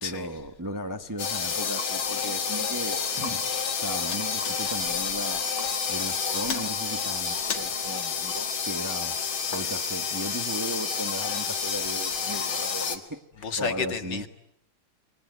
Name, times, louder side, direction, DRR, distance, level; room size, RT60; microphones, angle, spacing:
voice 1, 0.0-3.5 3.8-5.5 5.9-9.2 9.5-14.3, equal, 15° right, 6 dB, 1.0 m, -36 dB
sound 1, 1.2-13.0, left 6 dB, 90° left, 2.8 m, -29 dB
voice 2, 13.4-14.3, left 5 dB, 60° left, 8 dB, 2.3 m, -31 dB
28.5 x 22.0 x 9.3 m, 0.74 s
omnidirectional pair, 2.2 m